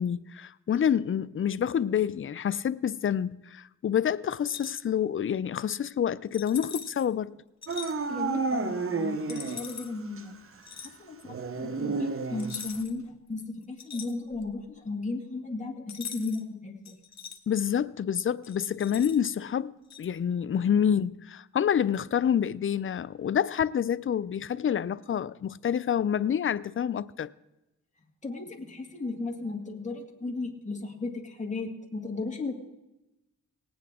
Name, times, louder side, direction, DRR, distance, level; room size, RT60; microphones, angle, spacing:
voice 1, 0.0-7.4 17.5-27.3, left 8 dB, 40° left, 0.4 m, -28 dB
sound 1, 4.4-4.9 6.3-7.1 7.6-7.9 9.3-9.9 10.6-11.0 12.4-13.0 13.4-14.6 15.9-16.4 16.9-17.4 18.4-19.3 19.9-20.1, left 7 dB, 60° left, 1.1 m, -42 dB
Dog / Siren, 7.7-9.8 10.2-10.3 11.3-12.8, right 4 dB, 45° right, 0.9 m, -31 dB
voice 2, 8.1-10.4 11.0-17.0 28.2-32.5, left 3 dB, 20° left, 2.0 m, -35 dB
19.0 x 8.8 x 3.6 m
cardioid pair, 55°, 32 cm